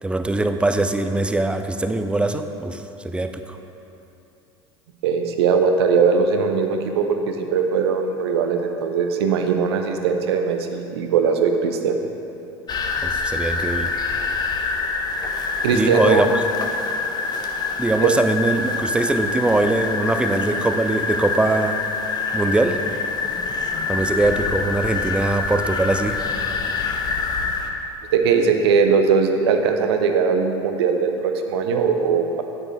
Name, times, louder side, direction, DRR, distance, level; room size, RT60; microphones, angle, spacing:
voice 1, 0.0-3.6 13.0-13.9 15.7-16.3 17.8-21.8 22.3-22.8 23.9-26.2, right 2 dB, 5° right, 8 dB, 0.5 m, -22 dB
voice 2, 5.0-11.9 15.6-16.2 18.0-18.2 28.1-32.4, right 5 dB, 65° right, 5 dB, 0.7 m, -20 dB
sound 1, 12.7-27.7, left 4 dB, 30° left, 0.8 m, -26 dB
8.9 x 8.5 x 3.3 m, 2.8 s
figure-of-eight pair, 75°, 14 cm